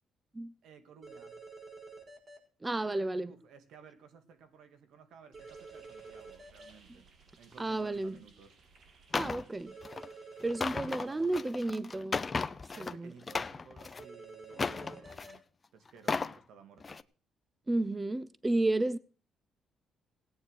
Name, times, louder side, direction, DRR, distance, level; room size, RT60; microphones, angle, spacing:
voice 1, 0.6-1.4 3.3-7.1 7.4-8.6 10.8-11.5 12.7-15.4 15.7-17.0, right 6 dB, 80° right, 2.3 m, -56 dB
sound 1, 1.0-2.4 5.3-6.7 9.7-11.0 14.0-15.3, right 4 dB, 40° right, 5.7 m, -49 dB
voice 2, 2.6-3.3 7.6-8.2 9.1-9.7 10.4-12.3 12.8-13.1 17.7-19.0, right 2 dB, 20° right, 0.6 m, -32 dB
sound 2, 5.3-12.4, right 4 dB, 60° right, 3.3 m, -63 dB
sound 3, 9.1-9.4 9.8-10.1 10.4-12.9 13.2-14.0 14.5-15.4 15.9-16.4 16.8-17.0, left 4 dB, 30° left, 0.8 m, -35 dB
17.0 x 9.1 x 6.4 m
cardioid pair, 90°, 0 cm